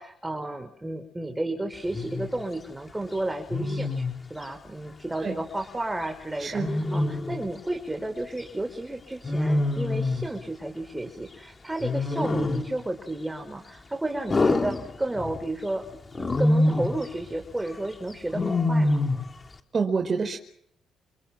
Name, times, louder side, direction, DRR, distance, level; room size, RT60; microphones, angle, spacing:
voice 1, 0.0-4.0 4.3-15.9 16.1-19.0, right 1 dB, 10° right, 6 dB, 5.2 m, -32 dB
Wild animals, 1.9-2.3 3.5-4.2 6.6-7.5 9.2-10.3 11.8-12.8 14.3-15.4 16.1-17.0 18.3-19.3, left 2 dB, 30° left, 3.8 m, -25 dB
voice 2, 19.7-20.4, right 5 dB, 40° right, 6 dB, 4.6 m, -26 dB
30.0 x 28.5 x 6.1 m, 0.66 s
cardioid pair, 90°, 0 cm